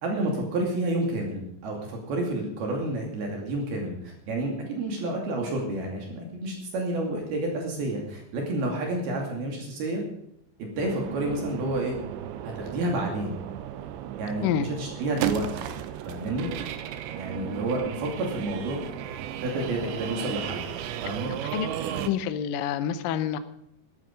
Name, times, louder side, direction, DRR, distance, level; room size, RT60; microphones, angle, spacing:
voice 1, 0.0-10.0 10.6-12.0 12.4-13.4 14.2-15.6 16.1-16.5 17.1-18.8 19.4-20.7 21.0-21.3, right 1 dB, 60° right, 1 dB, 4.3 m, -30 dB
sound 1, 10.8-22.1, right 11 dB, 80° right, 3.2 m, -35 dB
voice 2, 22.1-23.4, left 9 dB, 80° left, 11 dB, 2.0 m, -27 dB
14.5 x 13.0 x 5.3 m, 0.74 s
omnidirectional pair, 5.2 m